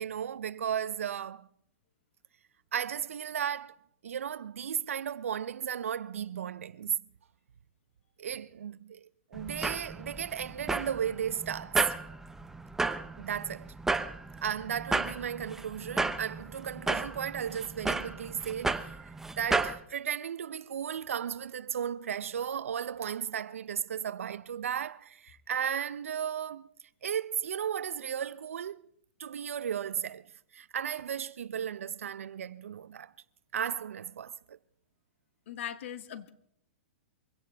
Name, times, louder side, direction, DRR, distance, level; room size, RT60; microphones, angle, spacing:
voice 1, 0.0-1.5 2.7-3.8 4.0-7.1 8.2-11.9 13.2-13.7 14.4-26.7 27.0-28.8 29.2-33.1 33.5-34.6, right 8 dB, 85° right, 0.6 m, -35 dB
sound 1, 9.3-19.8, right 3 dB, 5° right, 0.6 m, -33 dB
voice 2, 35.5-36.3, left 10 dB, 65° left, 1.5 m, -39 dB
23.5 x 17.0 x 3.4 m
hypercardioid pair, 140°, 7 cm